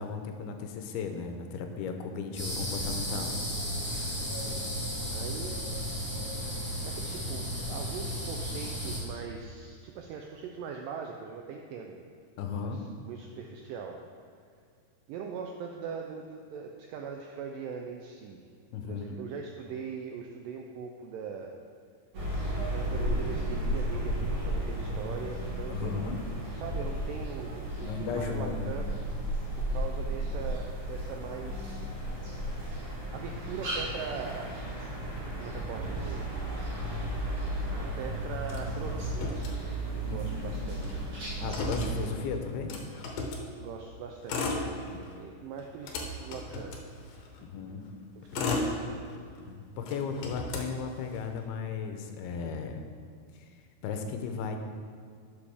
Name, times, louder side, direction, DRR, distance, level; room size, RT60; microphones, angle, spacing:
voice 1, 0.0-3.3 12.4-12.9 18.7-19.2 25.7-26.2 27.8-28.8 40.0-40.6 41.4-42.9 44.9-45.1 47.4-47.8 48.4-48.6 49.4-52.9 53.3-53.5 53.8-54.6, left 5 dB, 90° left, 5 dB, 2.7 m, -35 dB
sound 1, 2.4-9.0, equal, 5° left, 1.2 m, -34 dB
voice 2, 4.3-5.6 6.9-12.0 12.7-14.0 15.1-18.4 18.9-21.5 22.7-26.1 26.5-28.9 29.6-31.9 32.3-32.5 33.1-34.5 35.4-36.3 37.7-41.1 43.6-46.8 47.4-47.8 48.2-49.1, right 6 dB, 85° right, 2 dB, 1.9 m, -41 dB
sound 2, 22.1-42.1, right 1 dB, 50° right, 3.3 m, -34 dB
Motor vehicle (road), 38.5-40.1 40.4-40.5 40.7-43.5 44.1-45.2 45.6-47.4 48.0-49.4 49.8-51.4, left 2 dB, 70° left, 2.5 m, -36 dB
11.5 x 7.2 x 3.4 m, 2.2 s
omnidirectional pair, 4.5 m